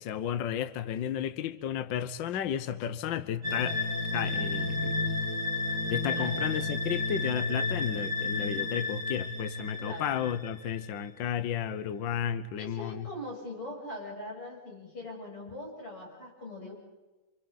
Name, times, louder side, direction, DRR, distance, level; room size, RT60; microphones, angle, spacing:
voice 1, 0.0-3.8 4.1-5.0 5.9-13.1, left 9 dB, 80° left, 12 dB, 1.0 m, -33 dB
sound 1, 3.4-11.0, left 3 dB, 35° right, 2.7 m, -32 dB
voice 2, 9.8-10.2 12.6-16.7, left 1 dB, 45° left, -2 dB, 8.9 m, -41 dB
28.0 x 27.5 x 4.1 m, 1.1 s
omnidirectional pair, 3.5 m